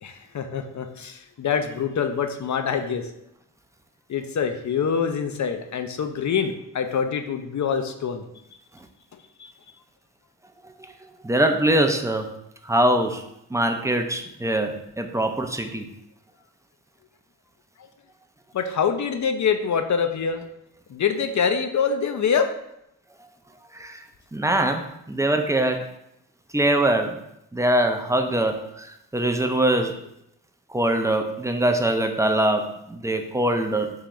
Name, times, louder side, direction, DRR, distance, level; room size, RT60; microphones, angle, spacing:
voice 1, 0.0-3.1 4.1-8.2 18.5-20.4 20.9-22.5, left 6 dB, 50° left, 7 dB, 0.5 m, -25 dB
voice 2, 11.2-12.3 12.6-13.3 13.5-15.8 23.7-24.0 24.3-25.8 26.5-27.2 27.5-30.0 30.7-33.9, right 1 dB, 10° right, 5 dB, 0.4 m, -23 dB
3.7 x 3.3 x 3.0 m, 0.79 s
cardioid pair, 55°, 37 cm